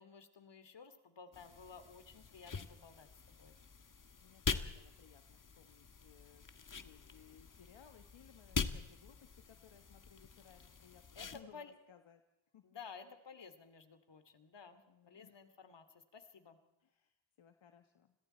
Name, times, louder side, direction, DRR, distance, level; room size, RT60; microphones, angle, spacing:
voice 1, 0.0-3.5 11.1-11.3 11.5-11.7 12.6-16.6, left 6 dB, 65° left, 10 dB, 2.8 m, -55 dB
sound 1, 1.3-11.4, left 5 dB, 40° left, 1.6 m, -44 dB
voice 2, 4.2-6.4 6.7-12.2 12.5-12.6 14.9-15.4 16.8-18.1, left 9 dB, 80° left, 7 dB, 1.5 m, -62 dB
30.0 x 21.5 x 4.5 m, 0.96 s
cardioid pair, 70°, 46 cm